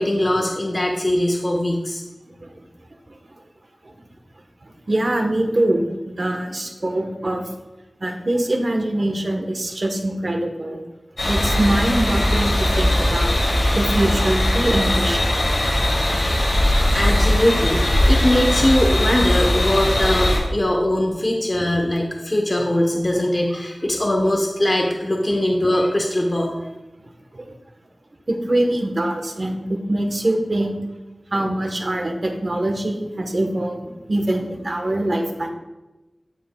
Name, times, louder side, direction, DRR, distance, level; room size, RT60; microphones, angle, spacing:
voice 1, 0.0-2.0 16.5-16.7 16.9-26.5, left 1 dB, 35° left, 0 dB, 1.0 m, -21 dB
voice 2, 4.6-7.4 8.0-10.8 11.3-13.3 13.7-15.5 27.3-27.5 28.3-30.8 31.3-35.5, right 1 dB, 55° right, 4 dB, 1.1 m, -23 dB
sound 1, 11.2-20.4, left 1 dB, 70° left, 2.6 m, -19 dB
14.0 x 5.2 x 2.3 m, 1.0 s
wide cardioid pair, 55°, 0 cm